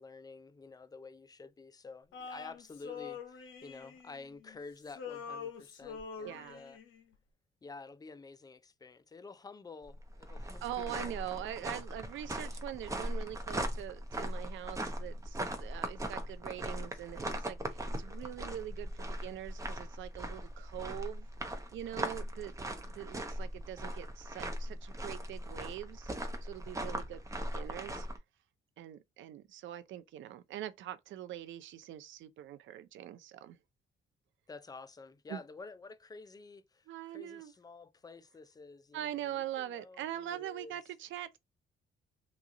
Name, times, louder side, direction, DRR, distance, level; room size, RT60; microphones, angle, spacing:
voice 1, 0.0-6.8 7.6-11.6 34.5-40.8, left 4 dB, 20° left, 0.4 m, -50 dB
Male singing, 2.1-4.6 4.9-7.0, left 6 dB, 80° left, 0.9 m, -45 dB
voice 2, 6.2-6.6 10.6-27.2 27.5-28.1 28.8-33.6 35.3-35.4 36.9-37.5 38.9-41.4, right 12 dB, 75° right, 0.5 m, -43 dB
sound 1, 9.8-28.2, right 1 dB, 15° right, 0.7 m, -39 dB
3.0 x 2.4 x 3.7 m
cardioid pair, 90°, 20 cm